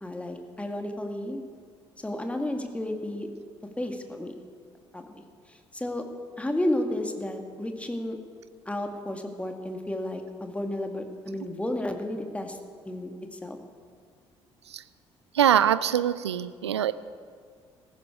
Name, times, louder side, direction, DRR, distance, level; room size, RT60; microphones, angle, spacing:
voice 1, 0.0-1.4 2.0-3.3 3.8-4.4 4.9-6.0 6.4-8.2 8.7-12.6 12.9-13.6, left 1 dB, 10° left, 4 dB, 1.9 m, -32 dB
voice 2, 15.3-16.9, right 10 dB, 80° right, 16 dB, 0.4 m, -23 dB
16.5 x 14.5 x 4.7 m, 2.1 s
figure-of-eight pair, 50°, 14 cm